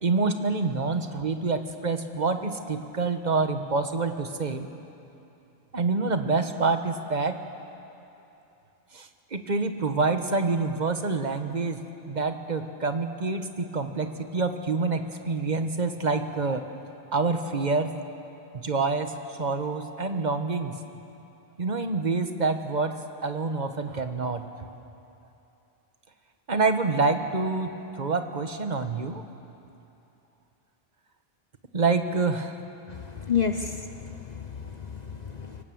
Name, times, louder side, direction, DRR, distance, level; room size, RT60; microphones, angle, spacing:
voice 1, 0.0-4.7 5.7-7.4 8.9-16.6 17.1-17.9 18.5-20.8 21.6-24.4 26.5-29.2 31.7-32.6, right 3 dB, 45° right, 7 dB, 1.3 m, -27 dB
voice 2, 32.9-35.6, left 7 dB, 45° left, 7 dB, 0.9 m, -31 dB
25.0 x 18.5 x 7.7 m, 2.9 s
omnidirectional pair, 1.0 m